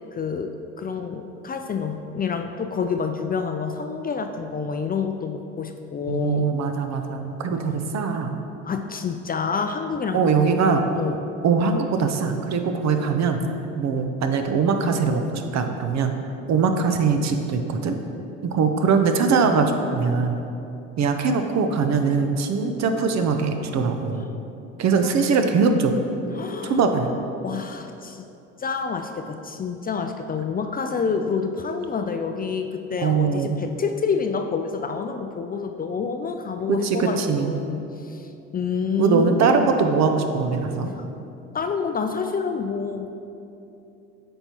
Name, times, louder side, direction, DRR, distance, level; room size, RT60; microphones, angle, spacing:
voice 1, 0.1-6.5 8.6-10.2 10.9-11.2 26.3-26.8 27.4-28.2 28.6-39.7 41.0-41.1 41.5-43.1, left 5 dB, 25° left, 6 dB, 0.4 m, -28 dB
voice 2, 6.1-8.4 10.1-10.8 11.4-13.4 13.8-16.1 16.5-17.9 18.4-20.4 21.0-24.3 24.8-25.9 26.6-27.1 33.0-33.6 36.7-37.6 39.0-40.9, right 5 dB, 50° right, 6 dB, 0.7 m, -22 dB
8.7 x 5.5 x 2.9 m, 2.8 s
hypercardioid pair, 70°, 35 cm